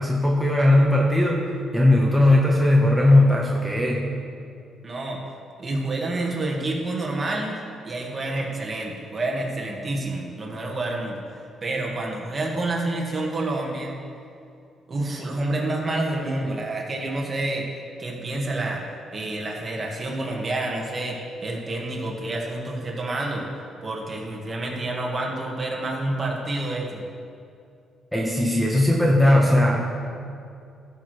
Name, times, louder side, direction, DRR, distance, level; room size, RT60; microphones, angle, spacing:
voice 1, 0.0-1.4 1.7-4.1 28.1-30.1, left 1 dB, ahead, -2 dB, 1.1 m, -18 dB
voice 2, 4.8-5.2 5.6-11.2 11.6-14.0 14.9-17.7 18.0-18.8 19.1-23.5 23.8-27.0, right 2 dB, 30° right, -1 dB, 1.8 m, -28 dB
14.5 x 6.4 x 3.3 m, 2.5 s
cardioid pair, 90°, 0 cm